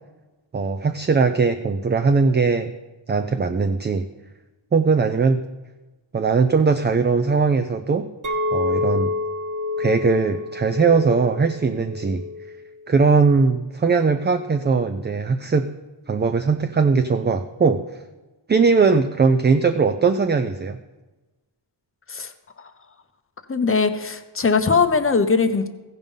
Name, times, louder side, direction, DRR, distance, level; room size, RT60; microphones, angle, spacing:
voice 1, 0.5-2.7 3.1-4.1 4.7-5.4 6.1-8.1 8.5-9.1 9.8-12.2 12.9-15.7 16.1-17.8 18.5-20.8, right 4 dB, 25° right, 8 dB, 0.3 m, -19 dB
Chink clink, 8.2-13.5, left 3 dB, 40° right, 1.1 m, -28 dB
voice 2, 23.5-25.7, left 4 dB, 30° left, 8 dB, 0.7 m, -20 dB
15.5 x 5.4 x 5.4 m, 1.2 s
wide cardioid pair, 125°, 45 cm